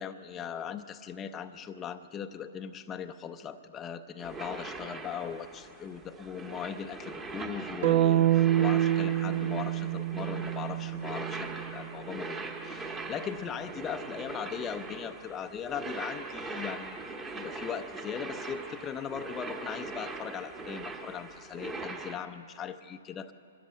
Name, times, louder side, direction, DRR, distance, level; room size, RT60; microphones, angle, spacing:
voice 1, 0.0-17.0 17.3-23.3, left 8 dB, 20° left, 6 dB, 0.6 m, -39 dB
sound 1, 4.2-22.2, right 3 dB, 15° right, 1.3 m, -41 dB
sound 2, 7.8-11.9, right 13 dB, 50° right, 0.6 m, -27 dB
23.5 x 13.5 x 9.4 m, 2.8 s
hypercardioid pair, 140°, 0 cm